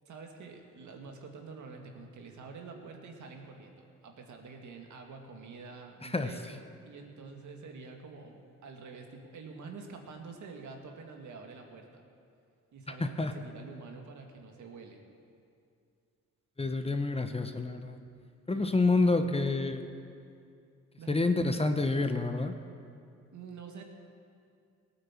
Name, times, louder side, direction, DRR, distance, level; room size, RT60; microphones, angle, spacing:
voice 1, 0.1-12.0 12.7-15.0 18.5-19.4 21.0-21.4 23.3-23.8, right 4 dB, 70° right, 3 dB, 2.0 m, -47 dB
voice 2, 13.0-13.3 16.6-18.0 18.5-19.8 21.1-22.5, left 3 dB, 20° left, 7 dB, 1.1 m, -28 dB
17.5 x 9.1 x 7.4 m, 2.4 s
cardioid pair, 75°, 30 cm